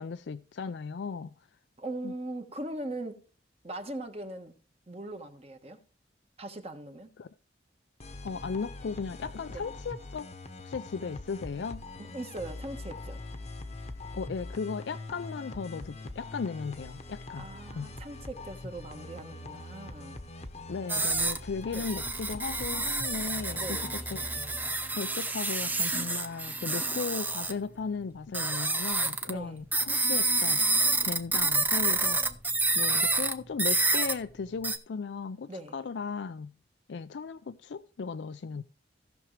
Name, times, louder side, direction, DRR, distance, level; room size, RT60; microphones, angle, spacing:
voice 1, 0.0-1.3 2.0-2.1 7.2-7.3 8.2-10.3 10.6-11.8 14.1-17.5 17.7-17.9 20.7-23.6 23.9-24.2 24.9-30.6 31.0-32.2 32.7-36.5 36.9-38.6, left 5 dB, 70° left, 0.4 m, -36 dB
voice 2, 1.8-3.3 3.6-4.5 4.9-5.8 6.4-7.1 9.5-9.6 12.0-13.2 17.4-20.2 21.7-21.9 23.5-23.9 29.3-29.6 35.5-35.8, right 1 dB, 35° right, 1.3 m, -40 dB
sound 1, 8.0-25.5, left 2 dB, 35° left, 0.9 m, -43 dB
sound 2, 20.9-21.4 21.7-27.5 28.3-29.3 29.7-33.3 33.6-34.1 34.6-34.8, right 3 dB, 10° right, 0.6 m, -28 dB
16.5 x 6.1 x 3.2 m
head